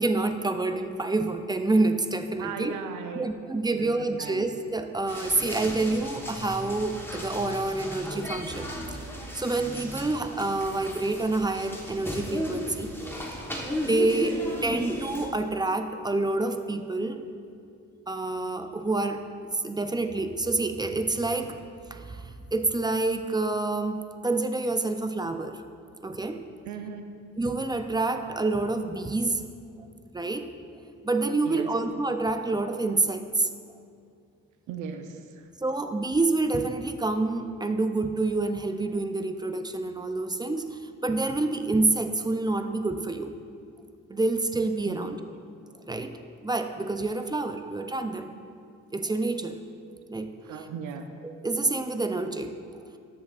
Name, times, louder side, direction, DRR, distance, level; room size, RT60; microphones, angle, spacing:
voice 1, 0.0-2.7 3.2-9.1 9.3-12.9 13.9-17.2 18.1-19.2 19.5-21.6 21.9-25.6 26.0-26.4 27.4-29.4 30.1-30.5 31.0-33.5 35.6-43.3 44.1-45.2 45.9-46.2 46.4-48.3 48.9-49.6 50.1-50.3 51.2-52.5, right 2 dB, 15° right, 7 dB, 0.4 m, -27 dB
voice 2, 2.4-3.3 3.5-4.5 26.6-27.2 31.4-31.7 34.7-35.5 44.8-45.0 50.4-51.1, right 6 dB, 90° right, 6 dB, 0.7 m, -38 dB
sound 1, 5.1-15.3, equal, 10° left, 1.2 m, -35 dB
13.0 x 6.9 x 2.4 m, 2.4 s
cardioid pair, 90°, 30 cm